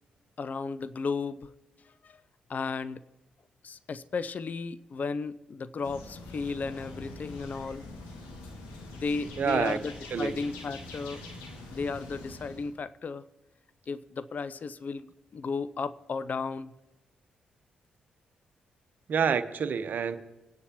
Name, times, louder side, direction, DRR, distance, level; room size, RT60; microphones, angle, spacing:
voice 1, 0.4-1.5 2.0-2.2 2.5-3.0 3.6-7.9 8.9-9.9 10.2-11.2 11.7-13.2 13.9-16.7, left 4 dB, 50° left, 0.5 m, -34 dB
sound 1, 5.8-12.7, left 2 dB, 85° left, 2.0 m, -44 dB
voice 2, 9.4-9.8 10.1-10.3 19.1-20.2, right 6 dB, 60° right, 0.9 m, -27 dB
26.0 x 9.7 x 3.0 m
hypercardioid pair, 40°, 4 cm